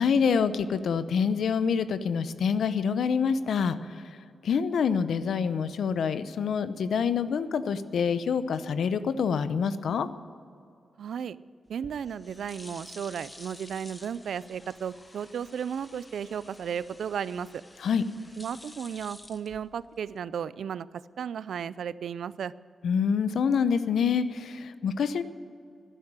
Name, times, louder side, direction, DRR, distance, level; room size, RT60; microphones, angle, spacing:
voice 1, 0.0-4.2 4.4-10.1 17.8-18.0 22.8-25.2, left 6 dB, 85° left, 13 dB, 0.7 m, -26 dB
voice 2, 11.0-11.4 11.7-17.6 18.4-22.5, right 8 dB, 85° right, 18 dB, 0.4 m, -34 dB
sound 1, 11.7-20.1, left 1 dB, 15° left, 1.1 m, -51 dB
12.5 x 11.0 x 9.9 m, 2.4 s
wide cardioid pair, 155°, 0 cm